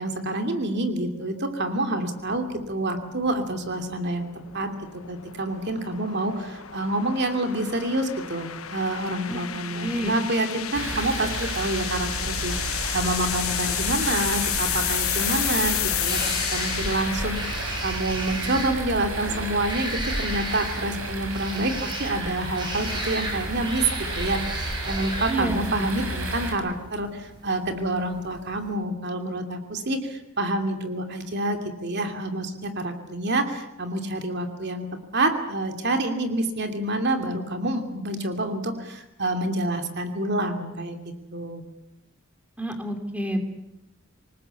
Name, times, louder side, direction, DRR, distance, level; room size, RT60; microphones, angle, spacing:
voice 1, 0.0-4.3 4.5-4.7 5.1-16.2 16.5-34.9 35.1-41.0 41.3-41.6, right 1 dB, 55° right, 6 dB, 2.8 m, -27 dB
sound 1, 2.2-18.5, left 12 dB, 85° left, 1.2 m, -32 dB
voice 2, 9.8-10.1 25.3-25.6 42.6-43.4, right 1 dB, 5° right, 6 dB, 3.0 m, -28 dB
sound 2, 10.6-28.7, right 1 dB, 20° right, 7.0 m, -37 dB
sound 3, 10.7-26.5, right 2 dB, 80° right, 6.0 m, -32 dB
27.0 x 20.0 x 8.5 m, 0.88 s
head